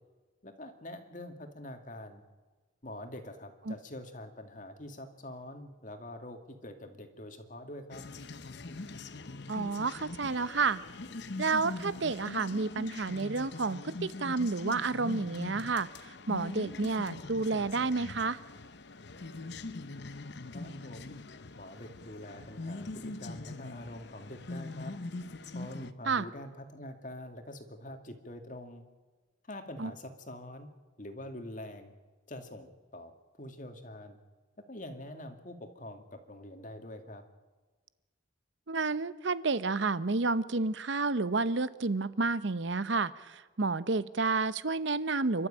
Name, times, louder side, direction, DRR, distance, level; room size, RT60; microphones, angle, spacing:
voice 1, 0.4-2.2 2.8-8.0 20.5-21.2 21.6-24.9 25.5-28.8 29.5-30.7 31.0-31.9 32.3-33.1 33.4-34.2 34.7-37.2, left 1 dB, 40° left, 6 dB, 2.2 m, -45 dB
sound 1, 7.9-25.9, left 2 dB, 55° left, 0.9 m, -42 dB
voice 2, 9.5-10.8 11.4-15.9 16.3-18.4 26.1-26.3 29.8-29.9 38.7-45.5, right 3 dB, 65° right, 16 dB, 0.8 m, -30 dB
29.0 x 12.5 x 8.8 m, 1.3 s
head